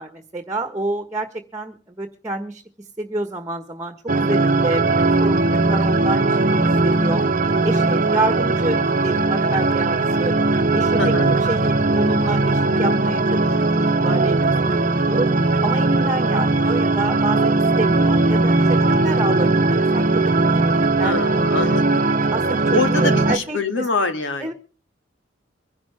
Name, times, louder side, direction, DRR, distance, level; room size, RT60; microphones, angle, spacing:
voice 1, 0.0-2.6 3.0-7.2 7.6-10.5 10.7-15.3 15.6-21.2 22.3-23.9 24.4-24.5, right 2 dB, 15° right, 8 dB, 1.4 m, -28 dB
sound 1, 4.1-23.4, right 2 dB, 45° right, 0.8 m, -19 dB
voice 2, 11.0-11.3 21.0-22.0 22.7-24.5, left 3 dB, 85° left, 8 dB, 2.3 m, -24 dB
24.0 x 11.5 x 3.5 m, 0.36 s
head